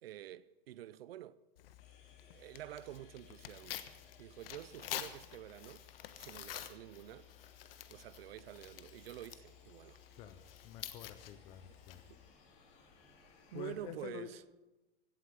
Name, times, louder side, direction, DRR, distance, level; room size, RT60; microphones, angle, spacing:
voice 1, 0.0-1.4 2.2-3.9 4.2-5.9 6.2-7.3 7.9-10.0 12.1-12.2 13.5-14.4, right 13 dB, 75° right, 0.7 m, -48 dB
Tearing, 1.6-12.3, left 11 dB, 70° left, 1.3 m, -49 dB
sound 1, 1.8-13.8, left 5 dB, 30° left, 2.7 m, -65 dB
sound 2, 3.9-13.9, equal, 25° right, 4.5 m, -74 dB
voice 2, 10.1-12.0 13.5-14.3, left 10 dB, 15° left, 0.5 m, -48 dB
16.5 x 8.2 x 9.5 m
supercardioid pair, 175°, 30 cm